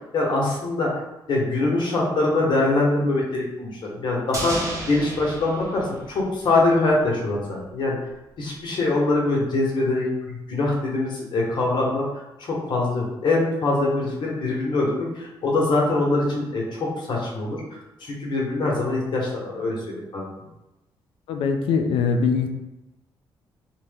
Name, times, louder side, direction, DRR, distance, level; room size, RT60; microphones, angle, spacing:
voice 1, 0.1-0.9 1.3-8.0 8.4-12.1 12.4-17.6 18.0-20.2, left 2 dB, 60° left, -3 dB, 0.9 m, -23 dB
sound 1, 4.3-6.7 7.0-7.1, right 1 dB, 35° right, 0.8 m, -33 dB
voice 2, 21.3-22.5, left 5 dB, 85° left, 5 dB, 0.4 m, -22 dB
2.7 x 2.1 x 3.3 m, 0.97 s
cardioid pair, 105°, 9 cm